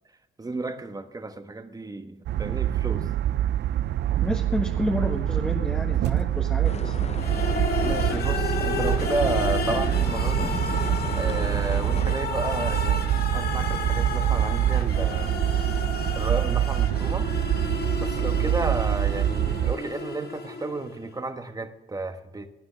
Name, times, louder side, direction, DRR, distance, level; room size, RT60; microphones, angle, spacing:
voice 1, 0.4-3.1 7.8-10.5 11.2-15.4 16.1-17.3 18.0-22.5, right 2 dB, 20° right, 8 dB, 1.1 m, -32 dB
sound 1, 2.3-19.7, right 12 dB, 60° right, 0.4 m, -25 dB
voice 2, 4.2-6.9, left 1 dB, 5° left, -1 dB, 1.4 m, -30 dB
sound 2, 6.6-12.1, left 5 dB, 35° left, 0.6 m, -35 dB
sound 3, 7.2-21.0, left 4 dB, 50° left, 1.7 m, -32 dB
17.5 x 9.5 x 3.3 m, 0.98 s
cardioid pair, 90°, 20 cm